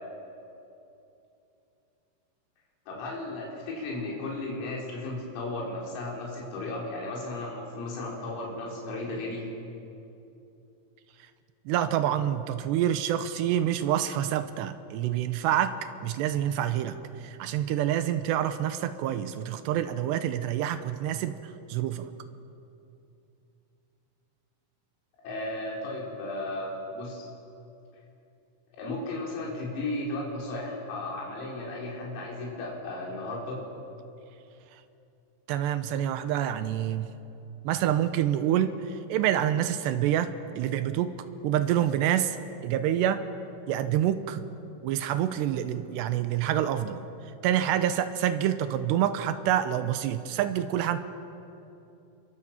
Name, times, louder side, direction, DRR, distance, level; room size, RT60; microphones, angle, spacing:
voice 1, 2.9-9.4 25.2-27.3 28.8-33.6 44.6-45.0 45.8-45.9, left 2 dB, 90° left, -3 dB, 6.7 m, -35 dB
voice 2, 11.7-15.7 16.0-17.0 17.2-21.4 21.7-22.1 35.5-37.1 37.6-38.8 39.1-41.1 41.4-42.4 42.6-43.2 43.7-44.4 44.8-47.1 47.4-51.0, right 11 dB, 80° right, 10 dB, 2.5 m, -27 dB
28.0 x 23.5 x 7.3 m, 2.8 s
omnidirectional pair, 5.9 m